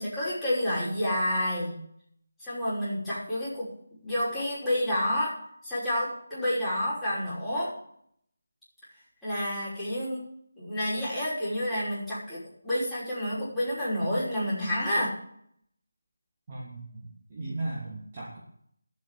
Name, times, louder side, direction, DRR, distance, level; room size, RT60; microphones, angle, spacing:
voice 1, 0.0-1.8 2.4-3.7 4.0-5.4 5.6-7.7 9.2-10.2 10.6-15.2, left 1 dB, ahead, -15 dB, 5.9 m, -29 dB
voice 2, 16.5-18.4, right 2 dB, 30° right, -5 dB, 2.9 m, -37 dB
13.0 x 8.1 x 7.6 m, 0.67 s
figure-of-eight pair, 170°, 0 cm